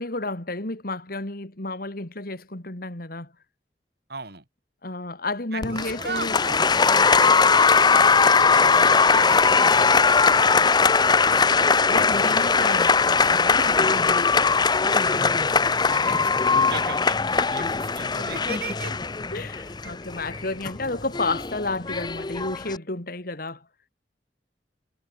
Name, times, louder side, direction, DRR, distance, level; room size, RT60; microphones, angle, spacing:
voice 1, 0.0-3.3 4.8-6.4 6.9-7.1 11.4-14.3 16.0-16.2 17.4-17.5 19.3-23.6, left 2 dB, 55° left, 2.6 m, -32 dB
voice 2, 4.1-4.4 5.5-6.6 7.2-10.2 14.9-19.0, right 4 dB, 60° right, 5.3 m, -38 dB
Applause, 5.6-22.8, left 5 dB, 25° left, 0.7 m, -20 dB
head